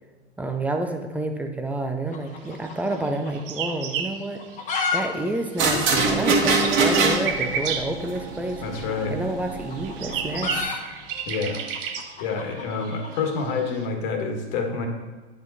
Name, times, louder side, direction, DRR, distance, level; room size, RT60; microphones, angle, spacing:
voice 1, 0.4-4.4 4.9-8.6 9.1-10.8, right 2 dB, 5° right, 4 dB, 0.6 m, -29 dB
sound 1, 2.1-3.4 3.7-3.8 4.3-5.0 5.3-5.4 5.6-5.7 6.3-6.4 7.6-7.8 8.9-13.1, left 5 dB, 25° left, 1.1 m, -31 dB
sound 2, 3.0-5.2 5.5-9.0 9.6-13.9, right 7 dB, 55° right, 0.9 m, -33 dB
sound 3, 5.6-10.6, right 3 dB, 35° right, 1.7 m, -24 dB
voice 2, 8.6-9.1 11.3-11.6 12.2-14.9, left 4 dB, 50° left, 4 dB, 1.6 m, -27 dB
9.8 x 5.1 x 4.1 m, 1.3 s
hypercardioid pair, 110°, 33 cm